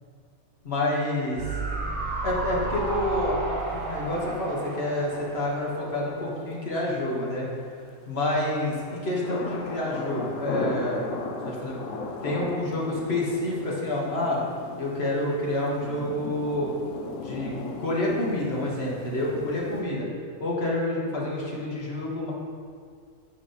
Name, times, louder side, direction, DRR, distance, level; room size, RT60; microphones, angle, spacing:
voice 1, 0.6-1.4 2.2-7.5 8.1-11.0 11.5-11.8 12.2-14.4 14.8-16.7 17.2-20.1 20.4-22.3, left 1 dB, 50° left, -4 dB, 1.8 m, -28 dB
sound 1, 1.4-6.6 6.9-7.0, right 2 dB, 75° right, 1.7 m, -32 dB
sound 2, 8.8-19.8, left 3 dB, 70° left, 1.0 m, -36 dB
8.9 x 4.8 x 5.2 m, 2.1 s
omnidirectional pair, 1.4 m